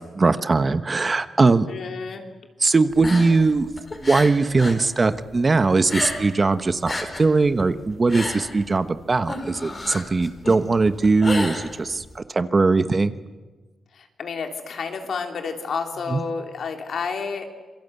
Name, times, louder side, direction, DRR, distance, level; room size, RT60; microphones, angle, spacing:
voice 1, 0.2-1.7 2.6-3.7 4.0-13.2 16.1-16.2, right 3 dB, 30° right, 11 dB, 1.1 m, -20 dB
voice 2, 1.7-2.3 13.9-17.5, left 5 dB, 70° left, 4 dB, 3.3 m, -30 dB
sound 1, 2.9-4.8 5.1-6.5 6.7-12.2, left 2 dB, 30° left, 4.7 m, -31 dB
27.0 x 23.0 x 8.2 m, 1.3 s
cardioid pair, 110°, 0 cm